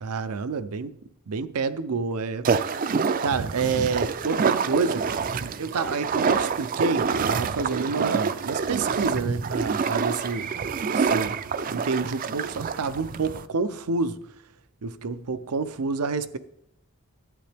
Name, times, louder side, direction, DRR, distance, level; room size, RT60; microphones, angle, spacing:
voice 1, 0.0-0.9 1.3-2.5 3.2-5.1 5.4-10.5 10.9-11.4 11.7-14.2 14.8-16.4, right 4 dB, 90° right, 0.6 m, -28 dB
sound 1, 2.4-13.5, right 5 dB, 40° right, 0.4 m, -27 dB
12.5 x 8.7 x 3.4 m
head